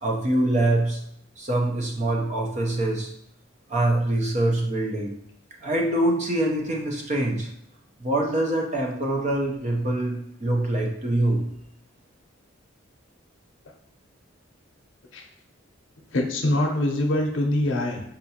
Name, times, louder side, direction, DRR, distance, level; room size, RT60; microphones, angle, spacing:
voice 1, 0.0-1.0 1.4-3.1 3.7-5.2 5.6-7.5 8.0-11.5, right 1 dB, 35° right, 0 dB, 0.6 m, -24 dB
voice 2, 16.1-18.0, left 1 dB, 70° left, 2 dB, 0.6 m, -24 dB
5.4 x 2.5 x 2.8 m, 0.73 s
head